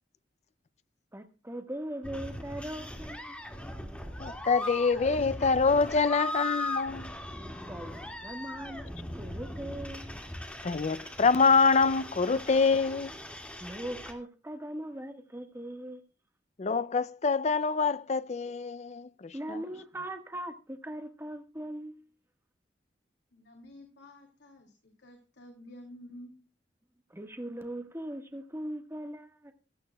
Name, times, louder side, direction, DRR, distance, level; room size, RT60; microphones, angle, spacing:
voice 1, 1.1-3.9 7.7-10.4 13.6-16.0 19.3-22.0 27.1-29.5, right 1 dB, 15° right, 1.5 m, -40 dB
sound 1, 2.0-14.1, left 1 dB, 5° left, 2.1 m, -39 dB
voice 2, 4.2-7.1 10.6-13.1 16.6-19.6, left 4 dB, 40° left, 0.5 m, -26 dB
voice 3, 23.3-26.4, left 1 dB, 75° left, 2.7 m, -50 dB
16.0 x 12.5 x 2.3 m
head